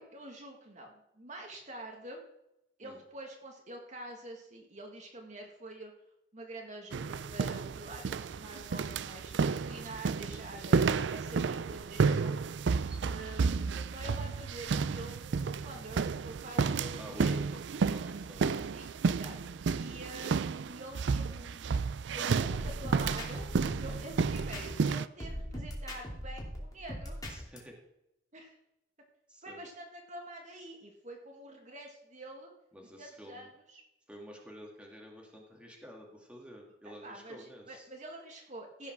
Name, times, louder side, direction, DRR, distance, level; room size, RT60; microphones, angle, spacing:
voice 1, 0.0-2.2 2.8-5.9 6.3-10.8 11.1-12.3 13.0-17.6 18.7-19.4 19.7-20.4 20.6-21.7 22.1-23.5 23.8-27.2 28.3-28.6 29.4-32.5 33.0-33.8 37.0-38.9, right 1 dB, 40° right, 1 dB, 1.9 m, -46 dB
sound 1, 6.9-25.1, right 5 dB, 65° right, 0.4 m, -32 dB
voice 2, 12.9-13.2 17.0-18.8 23.9-24.1 27.3-27.8 29.3-29.6 32.7-33.5 34.1-37.9, equal, 5° right, -1 dB, 2.2 m, -50 dB
sound 2, 22.5-24.9 25.2-27.6, equal, 20° left, 3.0 m, -40 dB
15.5 x 5.6 x 6.0 m, 0.84 s
head